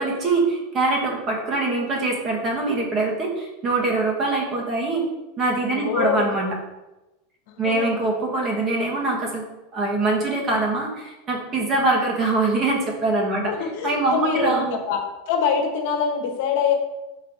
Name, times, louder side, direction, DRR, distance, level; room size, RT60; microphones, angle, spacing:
voice 1, 0.0-5.0 5.4-6.6 7.6-9.4 9.7-13.5 13.8-14.8, right 2 dB, 30° right, -1 dB, 1.6 m, -23 dB
voice 2, 5.7-6.3 7.5-8.0 10.3-10.6 13.5-16.7, left 7 dB, 65° left, 3 dB, 1.2 m, -25 dB
5.5 x 3.3 x 5.5 m, 1.0 s
supercardioid pair, 140°, 0 cm